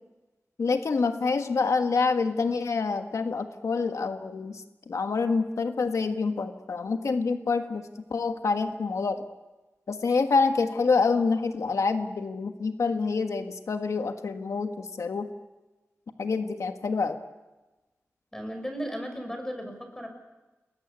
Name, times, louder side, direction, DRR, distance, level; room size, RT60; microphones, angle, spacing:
voice 1, 0.6-9.2 9.9-15.3 16.2-17.2, left 4 dB, 85° left, 6 dB, 1.5 m, -27 dB
voice 2, 18.3-20.1, equal, 10° left, 5 dB, 5.8 m, -35 dB
29.0 x 21.5 x 8.3 m, 1.1 s
wide cardioid pair, 110°, 5 cm